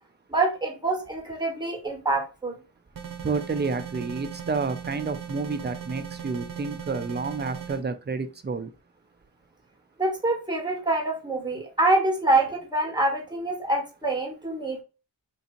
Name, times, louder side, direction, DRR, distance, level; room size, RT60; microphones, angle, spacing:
voice 1, 0.3-2.6 10.0-14.8, right 2 dB, 10° right, 1 dB, 1.4 m, -25 dB
sound 1, 2.9-7.8, right 8 dB, 50° right, 0.8 m, -38 dB
voice 2, 3.2-8.7, right 4 dB, 25° right, 10 dB, 0.4 m, -30 dB
3.8 x 2.7 x 2.5 m, 0.31 s
wide cardioid pair, 60°, 43 cm